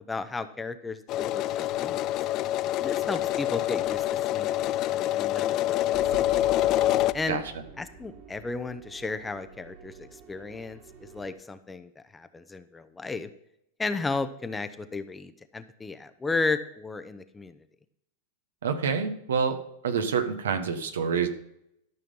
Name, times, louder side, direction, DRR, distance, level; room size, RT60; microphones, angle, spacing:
voice 1, 0.0-2.0 2.8-5.8 7.1-7.4 7.8-10.8 11.1-13.3 13.8-17.6, left 3 dB, 10° left, 11 dB, 0.7 m, -34 dB
sound 1, 1.1-7.1, left 14 dB, 40° left, 0.4 m, -26 dB
sound 2, 5.9-11.4, right 4 dB, 55° right, 2.4 m, -47 dB
voice 2, 18.6-19.6 19.8-21.3, right 6 dB, 90° right, 8 dB, 1.3 m, -27 dB
12.5 x 5.6 x 5.4 m, 0.76 s
hypercardioid pair, 120°, 0 cm